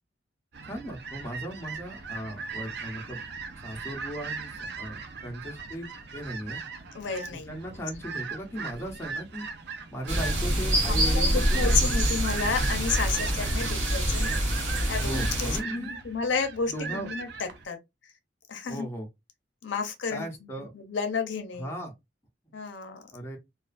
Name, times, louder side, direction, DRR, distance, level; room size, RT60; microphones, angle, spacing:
sound 1, 0.5-17.6, right 5 dB, 55° right, 0.4 m, -39 dB
voice 1, 0.6-3.2 3.5-6.6 7.5-9.5 9.9-12.0 15.0-16.0 16.7-17.1 18.7-19.1 20.1-20.7 21.6-21.9 23.1-23.4, right 1 dB, 15° left, 0.5 m, -37 dB
voice 2, 6.9-7.6 10.8-14.4 14.6-17.8 18.0-18.1 18.5-18.9 19.6-21.7 22.5-23.1, left 5 dB, 70° left, 0.5 m, -32 dB
sound 2, 10.1-15.6, right 1 dB, 90° right, 1.0 m, -26 dB
2.3 x 2.3 x 2.3 m
head